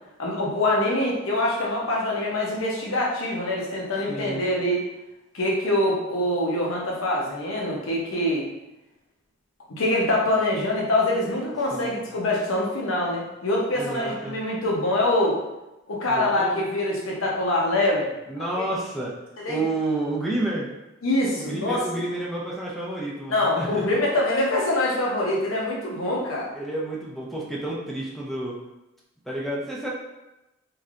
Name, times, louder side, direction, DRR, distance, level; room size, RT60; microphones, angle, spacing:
voice 1, 0.2-4.8 5.3-8.5 9.8-15.4 15.9-18.1 19.4-19.6 21.0-21.8 23.3-26.5, left 1 dB, 90° left, -2 dB, 0.8 m, -24 dB
voice 2, 4.1-4.4 11.7-12.0 13.7-14.4 16.1-16.6 18.3-19.1 19.4-20.7 21.4-24.0 26.5-28.6 29.3-29.9, right 2 dB, ahead, -5 dB, 0.5 m, -30 dB
3.2 x 2.7 x 2.4 m, 0.97 s
head